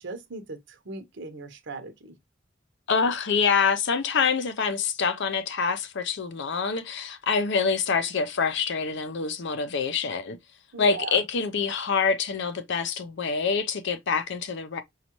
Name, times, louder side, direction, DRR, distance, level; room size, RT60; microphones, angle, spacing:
voice 1, 0.0-2.1 10.7-11.2, right 3 dB, 65° right, 0.7 m, -38 dB
voice 2, 2.9-10.4 10.8-14.8, left 5 dB, 65° left, 0.5 m, -26 dB
5.2 x 2.3 x 2.9 m
head